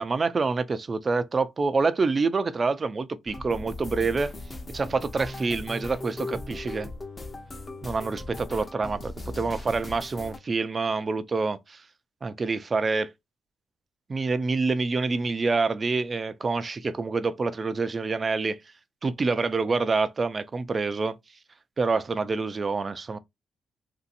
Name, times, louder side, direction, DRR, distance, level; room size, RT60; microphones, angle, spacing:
voice 1, 0.0-4.3 4.7-6.9 7.8-11.8 12.2-13.1 14.1-18.6 19.0-21.2 21.8-23.2, right 4 dB, 35° right, 0.4 m, -27 dB
sound 1, 3.3-10.4, left 2 dB, 25° left, 0.7 m, -38 dB
2.9 x 2.7 x 2.5 m
cardioid pair, 90°, 0 cm